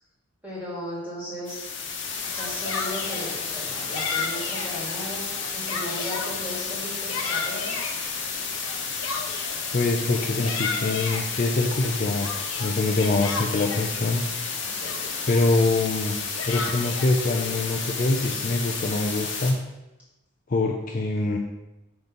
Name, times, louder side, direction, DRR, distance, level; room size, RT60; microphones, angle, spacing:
voice 1, 0.4-1.7 2.3-7.8 14.8-15.2, left 1 dB, 5° right, -7 dB, 2.3 m, -36 dB
sound 1, 1.4-19.5, left 5 dB, 55° left, 1.1 m, -31 dB
Yell, 2.2-3.3 3.9-4.7 5.2-6.3 6.8-7.9 8.7-9.6 10.2-11.3 11.8-13.9 14.5-14.6 14.8-15.3 16.1-17.1, left 4 dB, 80° left, 0.8 m, -33 dB
voice 2, 9.7-12.3 12.6-14.2 15.3-16.2 16.4-19.6 20.5-21.4, left 2 dB, 40° left, 1 dB, 0.5 m, -24 dB
6.0 x 3.9 x 5.3 m, 0.97 s
head